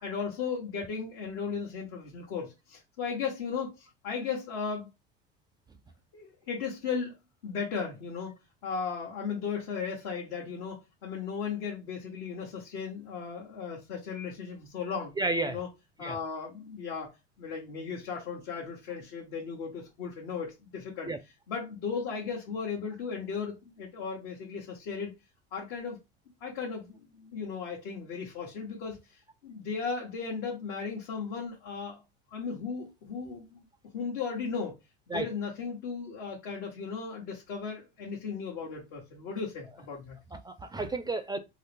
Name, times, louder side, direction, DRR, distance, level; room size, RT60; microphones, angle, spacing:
voice 1, 0.0-4.9 6.1-7.2 7.4-8.3 8.6-15.2 15.4-15.7 16.0-17.1 17.4-21.1 21.5-25.1 25.5-26.0 26.4-29.0 29.4-32.0 32.3-33.7 33.9-34.8 35.1-40.2, left 5 dB, 80° left, 1.2 m, -36 dB
voice 2, 15.2-15.6 16.0-16.2 21.0-21.2 35.1-35.3 40.3-41.4, right 2 dB, 15° right, 0.3 m, -31 dB
3.8 x 2.0 x 3.3 m
supercardioid pair, 95°, 30 cm